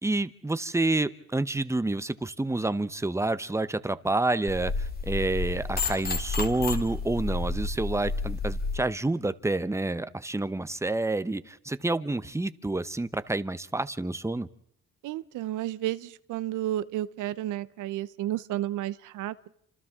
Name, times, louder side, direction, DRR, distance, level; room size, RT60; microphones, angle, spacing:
voice 1, 0.0-14.5, right 2 dB, 10° right, 0.9 m, -28 dB
sound 1, 4.5-8.8, left 3 dB, 30° left, 2.6 m, -31 dB
voice 2, 15.0-19.5, right 13 dB, 85° right, 0.8 m, -32 dB
29.5 x 26.5 x 3.7 m
cardioid pair, 90°, 30 cm